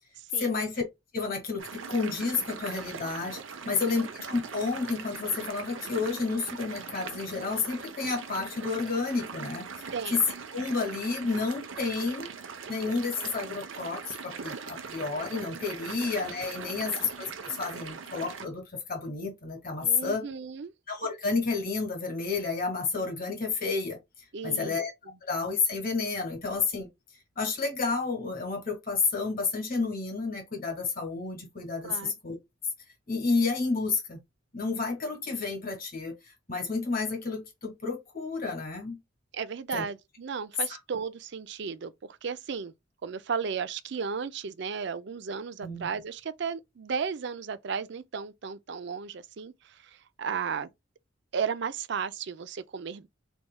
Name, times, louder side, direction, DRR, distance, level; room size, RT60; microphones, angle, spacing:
voice 1, 0.4-0.8 1.1-3.4 3.6-10.2 10.5-12.3 12.7-18.6 18.9-20.3 20.9-24.0 24.4-24.9 25.2-26.9 27.4-32.4 33.1-34.2 34.5-39.0 39.7-39.9 40.7-40.8 45.6-45.9, left 4 dB, 45° left, 1.8 m, -30 dB
sound 1, 1.6-18.5, right 5 dB, 80° right, 0.8 m, -41 dB
voice 2, 3.6-4.1 9.9-10.2 15.9-16.1 16.6-16.9 19.8-20.7 24.3-24.8 31.8-32.1 39.3-42.7 43.0-50.7 51.3-53.1, right 6 dB, 60° right, 0.5 m, -35 dB
4.1 x 3.4 x 2.2 m
head